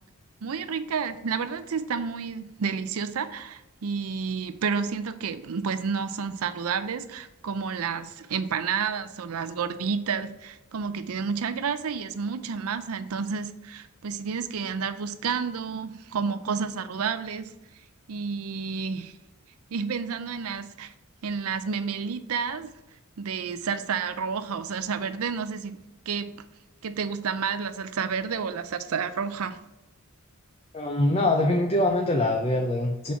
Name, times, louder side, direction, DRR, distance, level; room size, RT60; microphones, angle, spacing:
voice 1, 0.4-17.5 18.1-19.1 19.7-20.9 21.2-22.7 23.2-25.8 26.1-26.3 26.8-29.6, right 6 dB, 80° right, 12 dB, 0.5 m, -30 dB
voice 2, 30.7-33.1, left 1 dB, 25° left, 3 dB, 0.5 m, -23 dB
5.9 x 4.2 x 4.7 m, 0.97 s
head